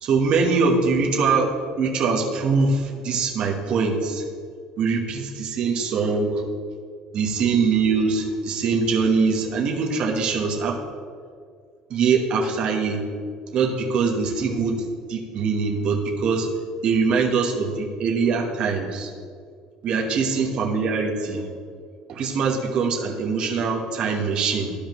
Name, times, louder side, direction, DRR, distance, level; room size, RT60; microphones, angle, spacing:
voice 1, 0.0-4.2 4.8-6.4 7.1-10.8 11.9-13.1 13.5-14.8 15.1-16.5 16.8-19.1 19.8-21.5 22.1-24.7, right 4 dB, 50° right, -1 dB, 1.1 m, -23 dB
12.5 x 5.0 x 3.0 m, 2.1 s
cardioid pair, 130°, 2 cm